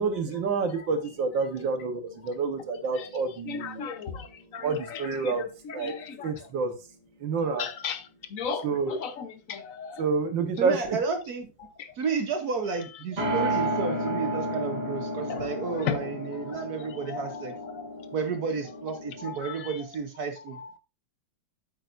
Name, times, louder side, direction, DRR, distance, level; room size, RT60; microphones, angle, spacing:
voice 1, 0.0-3.9 4.6-5.4 5.7-5.9 6.2-6.7 7.2-7.7 8.6-9.0 10.0-11.0, right 4 dB, 75° right, 1.8 m, -28 dB
sound 1, 0.9-4.7 4.9-5.0 13.2-19.4, right 1 dB, 35° right, 2.4 m, -33 dB
voice 2, 3.5-4.1 4.5-4.6 5.8-6.0 7.6-8.0 8.3-8.7 9.0-9.1 9.5-10.0 15.3-16.0 17.1-17.2 19.2-19.3, left 7 dB, 55° left, 1.0 m, -33 dB
voice 3, 10.6-11.5 12.0-17.5 18.1-20.6, right 5 dB, 55° right, 1.3 m, -32 dB
8.8 x 8.0 x 2.5 m
omnidirectional pair, 2.1 m